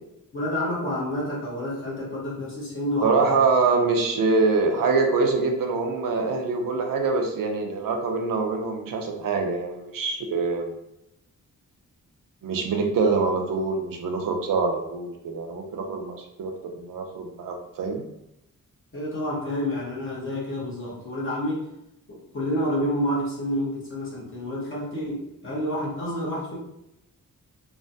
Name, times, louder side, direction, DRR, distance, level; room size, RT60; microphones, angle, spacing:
voice 1, 0.3-3.9 18.9-21.7 22.1-26.6, equal, 40° left, -6 dB, 1.1 m, -29 dB
voice 2, 3.0-10.7 12.4-18.0, right 4 dB, 85° right, 3 dB, 0.6 m, -24 dB
3.2 x 2.1 x 2.7 m, 0.84 s
wide cardioid pair, 165°, 32 cm